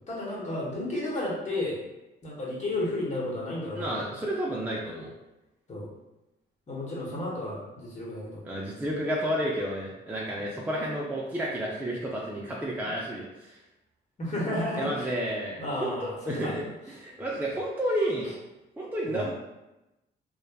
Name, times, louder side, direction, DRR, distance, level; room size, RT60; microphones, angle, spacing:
voice 1, 0.0-1.8 2.2-4.0 5.7-5.9 6.7-8.4 14.2-15.1 15.6-16.5 19.0-19.2, left 1 dB, 35° left, -5 dB, 1.1 m, -32 dB
voice 2, 3.7-5.1 8.4-13.6 14.8-18.3 18.8-19.3, right 1 dB, 10° right, -4 dB, 0.4 m, -31 dB
3.2 x 2.1 x 2.3 m, 0.98 s
cardioid pair, 90°, 20 cm